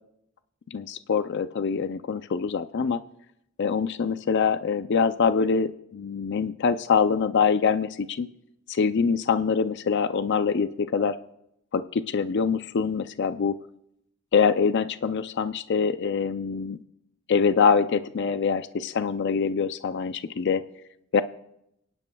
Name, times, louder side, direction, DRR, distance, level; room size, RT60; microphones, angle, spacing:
voice 1, 0.7-3.0 3.6-8.3 8.7-11.2 11.7-13.6 14.3-16.8 17.3-20.6 21.1-21.2, left 5 dB, 55° left, 12 dB, 0.4 m, -24 dB
30.0 x 10.5 x 2.3 m, 0.79 s
head